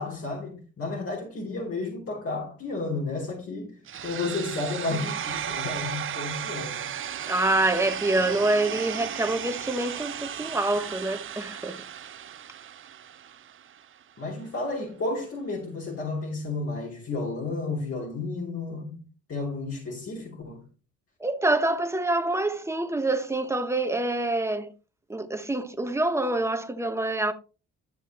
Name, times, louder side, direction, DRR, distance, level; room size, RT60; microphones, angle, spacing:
voice 1, 0.0-6.9 14.2-19.0 19.3-20.6, left 3 dB, 50° left, 3.1 m, -32 dB
sound 1, 3.9-13.9, right 9 dB, 45° right, 0.6 m, -35 dB
voice 2, 7.3-11.8 21.2-24.7 25.1-27.3, right 2 dB, 10° right, 1.1 m, -26 dB
12.5 x 6.8 x 3.0 m
cardioid pair, 90°, 30 cm